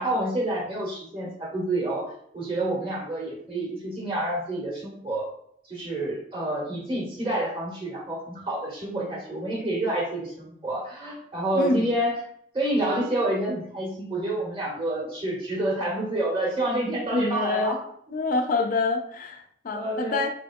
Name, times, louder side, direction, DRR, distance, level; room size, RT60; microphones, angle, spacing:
voice 1, 0.0-5.3 5.7-12.1 12.5-17.8 19.7-20.2, right 1 dB, 30° right, -4 dB, 1.3 m, -28 dB
voice 2, 11.5-11.9 17.1-17.8 18.1-20.3, left 3 dB, 50° left, 4 dB, 0.4 m, -26 dB
4.4 x 3.4 x 2.3 m, 0.68 s
head